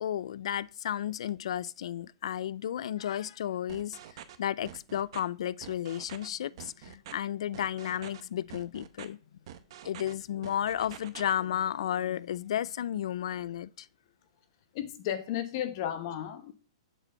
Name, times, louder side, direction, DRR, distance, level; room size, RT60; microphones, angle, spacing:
voice 1, 0.0-9.2 9.8-13.9, left 10 dB, 70° left, 0.3 m, -33 dB
sound 1, 3.7-4.4 4.6-5.2 5.6-6.3 6.6-7.1 7.5-8.2 8.5-9.1 9.5-10.1 10.4-11.3, right 11 dB, 55° right, 0.8 m, -46 dB
voice 2, 14.7-16.5, left 10 dB, 45° left, 1.1 m, -34 dB
7.1 x 4.2 x 5.5 m
hypercardioid pair, 150°, 3 cm